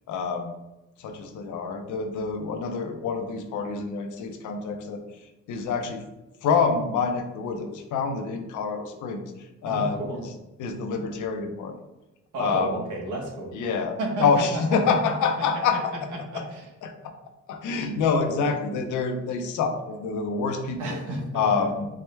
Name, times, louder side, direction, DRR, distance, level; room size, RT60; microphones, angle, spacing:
voice 1, 0.1-0.5 1.0-5.0 5.5-6.0 6.4-10.3 10.6-11.8 12.4-12.8 13.5-15.9 16.3-16.4 16.8-17.1 17.5-21.0 21.3-21.9, left 5 dB, 80° left, 6 dB, 0.6 m, -27 dB
voice 2, 9.7-10.2 12.3-13.5 14.0-14.6 15.7-15.8 16.1-16.6 20.8-21.4, right 1 dB, 80° right, 0 dB, 1.0 m, -31 dB
4.8 x 2.1 x 3.1 m, 1.0 s
cardioid pair, 90°, 30 cm